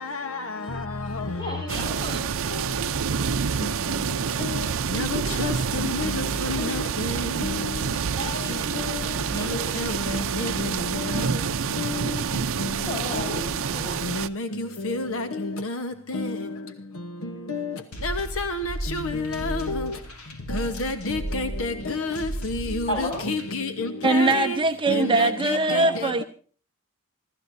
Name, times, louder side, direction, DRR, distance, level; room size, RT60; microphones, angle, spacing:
voice 1, 1.4-2.3 5.1-5.6 8.1-10.0 12.7-14.1 22.9-23.2 25.5-25.9, left 1 dB, 20° left, 7.5 m, -34 dB
sound 1, 1.7-14.3, right 6 dB, 65° right, 0.6 m, -27 dB
voice 2, 4.9-6.8 7.4-7.5 9.8-10.7 11.8-11.9 14.1-14.5 14.8-15.8 16.1-16.4 17.5-17.7 18.0-19.9 20.5-24.6 24.9-25.8, left 2 dB, 65° left, 1.1 m, -29 dB
sound 2, 17.9-23.6, right 1 dB, 85° left, 3.4 m, -35 dB
voice 3, 24.0-26.2, right 2 dB, 25° right, 0.7 m, -21 dB
28.5 x 13.5 x 2.7 m
head